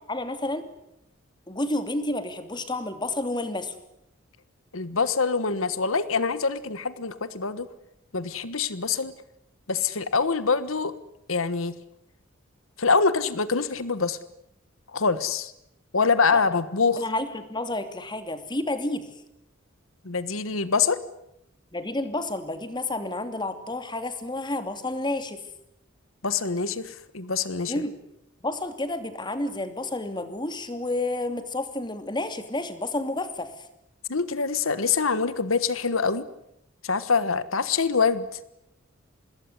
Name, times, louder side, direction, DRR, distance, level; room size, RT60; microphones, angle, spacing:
voice 1, 0.1-0.7 1.5-3.7 16.3-16.4 17.0-19.1 21.7-25.4 27.7-28.0 28.4-33.7, left 2 dB, 20° left, 9 dB, 2.7 m, -30 dB
voice 2, 4.7-7.7 8.1-9.1 9.7-10.9 11.3-11.7 12.8-14.2 14.9-15.5 15.9-17.0 20.0-21.0 26.2-27.7 34.1-36.3 36.8-38.3, left 5 dB, 85° left, 14 dB, 1.4 m, -25 dB
26.0 x 20.5 x 9.8 m, 0.81 s
head